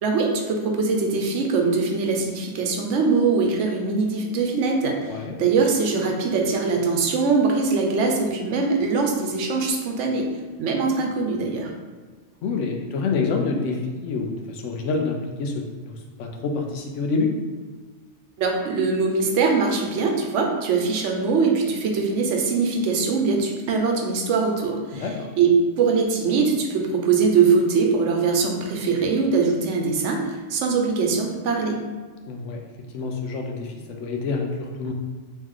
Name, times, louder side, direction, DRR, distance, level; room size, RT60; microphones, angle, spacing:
voice 1, 0.0-10.3 10.6-11.7 18.4-25.1 25.4-30.2 30.5-31.8, right 4 dB, 80° right, 2 dB, 1.0 m, -22 dB
voice 2, 12.4-15.5 15.8-17.3 24.9-25.3 32.3-32.6 32.9-34.9, left 4 dB, 85° left, 2 dB, 1.0 m, -27 dB
3.2 x 3.1 x 3.6 m, 1.5 s
omnidirectional pair, 1.2 m